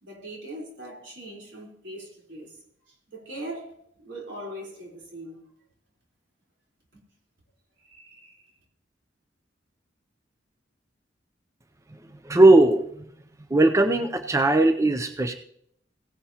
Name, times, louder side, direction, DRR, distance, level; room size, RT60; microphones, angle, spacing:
voice 1, 0.0-2.6 2.9-5.4 6.9-7.0 7.8-8.5, right 1 dB, 80° right, 3.9 m, -41 dB
voice 2, 12.2-13.0 13.5-15.3, right 2 dB, 15° right, 0.5 m, -18 dB
17.0 x 10.5 x 2.9 m
head